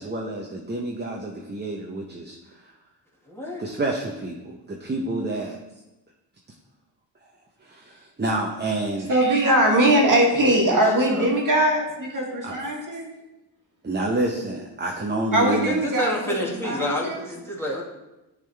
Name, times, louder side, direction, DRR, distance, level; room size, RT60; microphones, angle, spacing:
voice 1, 0.0-2.4 3.6-5.6 7.6-9.1 12.4-12.5 13.8-15.8, right 2 dB, 20° right, 0 dB, 0.8 m, -28 dB
voice 2, 3.3-3.6 10.3-11.3 15.5-17.8, left 1 dB, 5° left, -4 dB, 1.8 m, -29 dB
voice 3, 9.1-13.1 15.3-16.4 16.6-17.3, right 1 dB, 40° right, -1 dB, 1.7 m, -21 dB
10.5 x 3.8 x 3.4 m, 0.99 s
cardioid pair, 75°, 46 cm